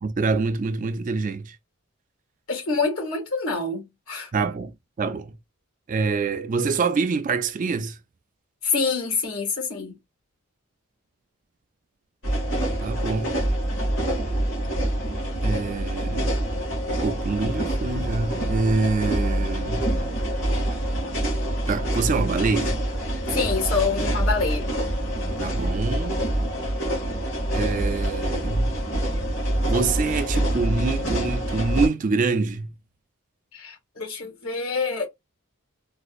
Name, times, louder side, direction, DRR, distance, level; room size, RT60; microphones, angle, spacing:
voice 1, 0.0-1.6 4.3-4.7 5.0-5.3 5.9-8.0 12.8-13.3 15.4-16.3 17.0-19.8 21.7-22.8 25.4-26.2 27.5-28.7 29.6-32.7, right 4 dB, 35° right, 0.3 m, -25 dB
voice 2, 2.5-4.3 8.6-10.0 23.3-24.7 33.5-35.1, left 4 dB, 75° left, 1.7 m, -26 dB
sound 1, 12.2-31.9, right 1 dB, 55° left, 2.3 m, -26 dB
4.0 x 2.4 x 2.4 m
head